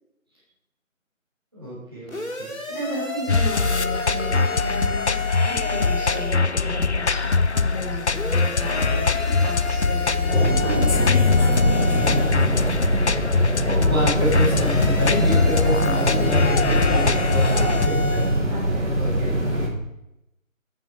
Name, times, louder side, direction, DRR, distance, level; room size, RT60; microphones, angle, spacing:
voice 1, 1.5-2.5 11.5-11.7 12.0-12.9 13.4-18.3 19.0-19.7, equal, 20° right, -7 dB, 3.3 m, -29 dB
sound 1, 2.1-6.4 8.1-12.4 14.1-18.4, left 2 dB, 85° left, 3.1 m, -31 dB
voice 2, 2.7-11.4 16.9-17.9 18.5-18.8, equal, 15° left, -14 dB, 2.3 m, -34 dB
sound 2, 3.3-17.9, left 4 dB, 55° left, 0.5 m, -22 dB
sound 3, 10.3-19.7, right 1 dB, 55° right, 3.4 m, -23 dB
9.8 x 9.3 x 4.9 m, 0.85 s
figure-of-eight pair, 175°, 40 cm